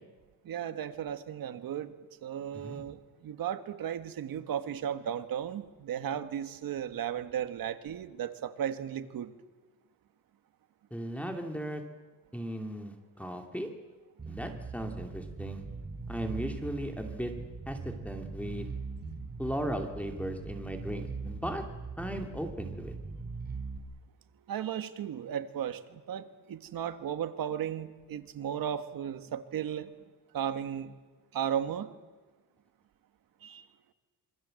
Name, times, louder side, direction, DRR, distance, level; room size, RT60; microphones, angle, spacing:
voice 1, 0.4-1.9 2.2-9.3 24.5-29.9 30.3-30.9 31.3-31.9 33.4-33.7, right 9 dB, 75° right, 9 dB, 1.8 m, -35 dB
voice 2, 10.9-11.8 12.3-13.7 14.3-15.6 16.1-17.3 17.7-18.7 19.4-21.6 22.0-22.9, equal, 5° left, 4 dB, 2.7 m, -37 dB
Bass guitar, 14.2-23.8, right 4 dB, 30° right, 5.1 m, -40 dB
27.0 x 24.0 x 7.8 m, 1.3 s
cardioid pair, 125°, 35 cm